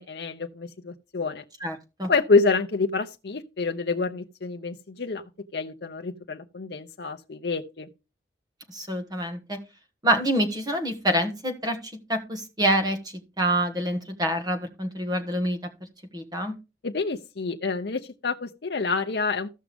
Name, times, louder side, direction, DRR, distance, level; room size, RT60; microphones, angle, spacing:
voice 1, 0.0-1.4 2.1-7.9 16.8-19.5, left 4 dB, 65° left, 0.7 m, -27 dB
voice 2, 1.6-2.1 8.7-9.6 10.0-15.6 16.1-16.5, right 1 dB, 20° right, 1.6 m, -26 dB
15.0 x 6.1 x 3.4 m
head